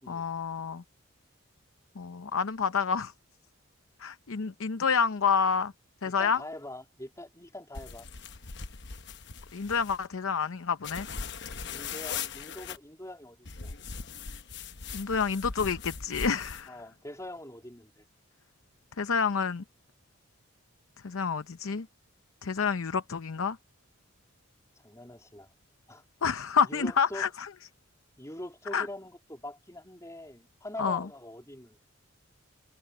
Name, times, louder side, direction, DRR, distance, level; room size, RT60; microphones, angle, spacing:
voice 1, 0.1-0.8 2.0-3.1 4.0-5.7 6.0-6.4 9.5-11.1 14.9-16.7 19.0-19.6 21.0-21.9 22.4-23.6 26.2-27.5 28.7-28.9 30.8-31.0, left 6 dB, 90° left, 0.7 m, -28 dB
voice 2, 6.0-8.1 11.6-13.7 16.7-18.1 24.8-25.5 25.9-26.0 26.7-27.3 28.2-31.8, left 1 dB, 15° left, 3.5 m, -43 dB
sound 1, 7.7-10.1 10.8-12.8 13.5-16.7, left 6 dB, 55° left, 1.0 m, -40 dB
head